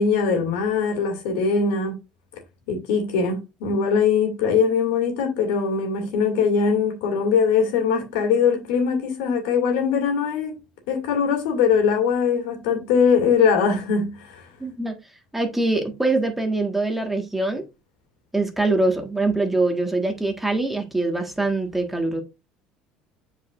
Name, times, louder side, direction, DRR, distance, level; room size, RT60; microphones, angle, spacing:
voice 1, 0.0-1.9 2.7-10.5 10.9-14.5, left 6 dB, 75° left, 2.4 m, -21 dB
voice 2, 14.6-15.0 15.3-17.6 18.3-22.2, right 2 dB, 5° right, 1.5 m, -23 dB
7.9 x 4.9 x 2.5 m
hypercardioid pair, 80°, 3 cm